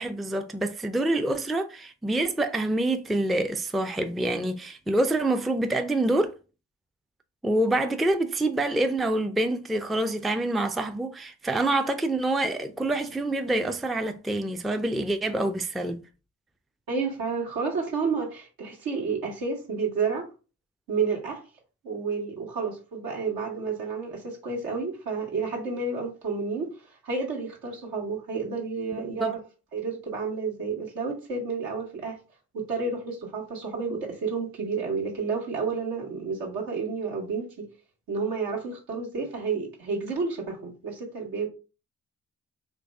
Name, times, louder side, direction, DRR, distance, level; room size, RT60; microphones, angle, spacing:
voice 1, 0.0-6.3 7.4-16.0 29.2-29.3, right 1 dB, ahead, 0.4 m, -26 dB
voice 2, 16.9-20.3 20.9-21.4 21.8-29.4 29.7-32.2 32.5-37.7 38.1-41.5, right 4 dB, 75° right, 1.2 m, -30 dB
3.1 x 2.6 x 3.4 m
hypercardioid pair, 40°, 36 cm